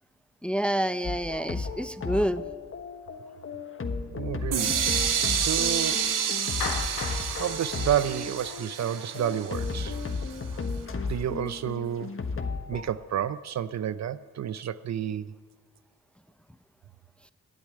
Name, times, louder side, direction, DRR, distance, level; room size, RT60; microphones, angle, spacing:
voice 1, 0.4-2.4, equal, 5° left, 0.5 m, -28 dB
sound 1, 1.0-12.8, left 4 dB, 40° left, 1.2 m, -34 dB
voice 2, 4.1-4.7 5.3-6.1 7.3-10.0 11.1-12.1 12.7-15.3, right 10 dB, 55° right, 0.5 m, -30 dB
sound 2, 4.5-10.3, right 8 dB, 75° right, 1.1 m, -29 dB
Clapping, 6.6-8.9, left 6 dB, 90° left, 1.3 m, -36 dB
9.8 x 8.2 x 9.4 m
supercardioid pair, 50°, 32 cm